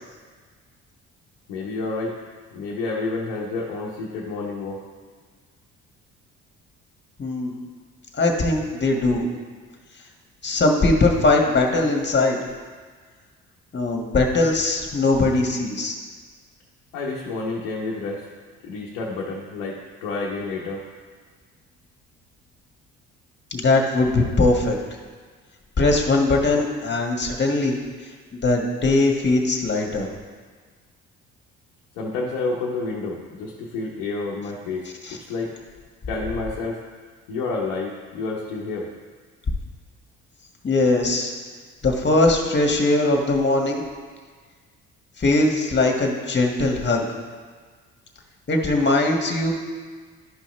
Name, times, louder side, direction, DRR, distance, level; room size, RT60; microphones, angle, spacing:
voice 1, 1.5-2.2 2.5-4.8 16.9-18.3 18.6-20.8 31.9-34.9 35.1-35.5 36.1-36.8 37.3-38.9, left 3 dB, 85° left, -4 dB, 1.0 m, -29 dB
voice 2, 7.2-7.6 8.1-9.2 10.4-12.4 13.7-15.9 23.5-24.7 25.8-27.8 28.3-30.1 35.0-35.2 40.6-41.3 41.8-43.8 45.2-47.0 48.5-49.5, left 2 dB, 35° left, 1 dB, 1.6 m, -20 dB
11.5 x 5.5 x 3.3 m, 1.5 s
hypercardioid pair, 60°, 32 cm